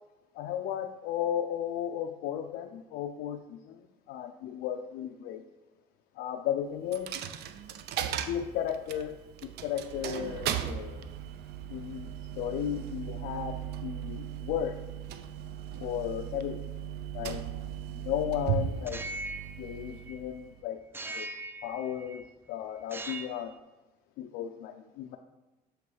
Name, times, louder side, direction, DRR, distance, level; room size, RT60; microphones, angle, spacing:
voice 1, 0.3-5.4 6.1-7.1 8.1-11.1 11.7-14.8 15.8-16.7 17.1-17.4 17.9-19.0 19.6-20.8 21.1-21.3 21.6-23.5 24.2-25.2, left 10 dB, 85° left, 4 dB, 0.5 m, -35 dB
Coin (dropping), 6.9-20.6, right 9 dB, 75° right, 0.5 m, -37 dB
sound 1, 18.8-20.4 20.9-22.3 22.8-23.5, right 2 dB, 15° right, 0.4 m, -41 dB
7.6 x 3.2 x 4.6 m, 1.1 s
cardioid pair, 110°, 17 cm